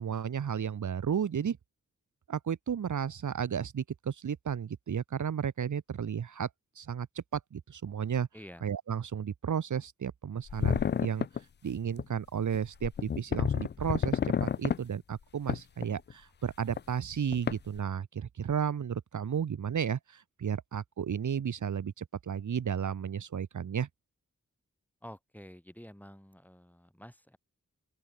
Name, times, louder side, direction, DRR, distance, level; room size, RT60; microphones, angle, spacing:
voice 1, 0.0-1.6 2.3-6.5 6.8-8.3 8.6-11.3 11.6-23.9, right 8 dB, 75° right, 0.9 m, -33 dB
voice 2, 8.3-8.6 25.0-27.4, equal, 5° left, 4.5 m, -49 dB
sound 1, 10.5-11.4 12.0-12.1 12.5-12.6 12.8-14.8 15.5-16.1 16.8-16.9 17.3-17.8, left 7 dB, 35° left, 0.4 m, -29 dB
open air
cardioid pair, 40°, 30 cm